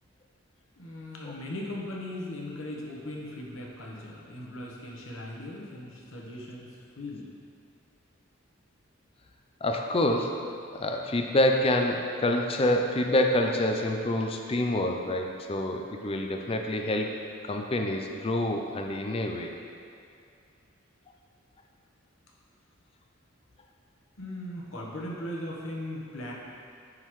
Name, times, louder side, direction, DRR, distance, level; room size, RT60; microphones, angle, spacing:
voice 1, 0.8-7.3 24.2-26.3, left 1 dB, 80° left, -3 dB, 1.2 m, -38 dB
voice 2, 9.6-10.3 10.7-17.1 17.4-19.5, left 1 dB, 30° left, 3 dB, 0.5 m, -27 dB
10.5 x 3.8 x 3.1 m, 2.4 s
head